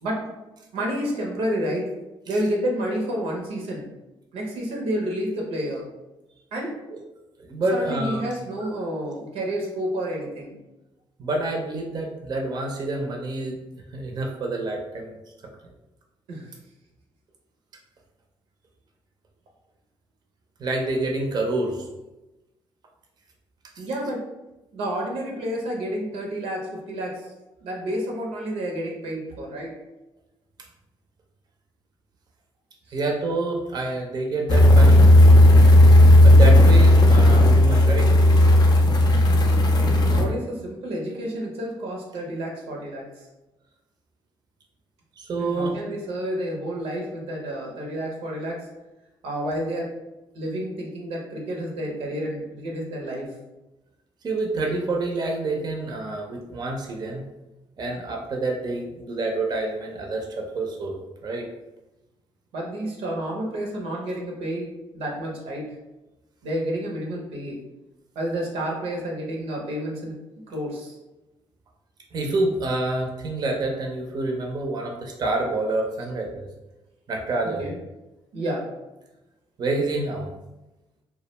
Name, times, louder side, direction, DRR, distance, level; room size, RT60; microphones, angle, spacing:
voice 1, 0.7-1.9 2.3-3.9 4.3-5.9 6.5-6.8 7.7-10.6 16.3-16.5 23.8-24.2 24.7-27.3 27.6-29.7 32.9-33.0 40.1-43.2 45.4-48.7 49.2-49.9 50.3-53.3 62.5-65.7 66.4-67.6 68.1-70.2 70.5-70.9 77.4-77.8 78.3-78.6, right 1 dB, 90° right, -1 dB, 0.6 m, -30 dB
voice 2, 7.4-8.2 11.2-13.6 13.9-15.2 20.6-21.9 32.9-35.1 36.2-38.1 45.2-45.7 54.2-57.2 57.8-60.9 61.2-61.5 72.1-76.5 77.1-77.7 79.6-80.3, right 2 dB, 45° right, 1 dB, 0.5 m, -27 dB
sound 1, 34.5-40.2, left 1 dB, 45° left, 0.5 m, -13 dB
2.3 x 2.1 x 3.0 m, 1.0 s
cardioid pair, 75°, 10 cm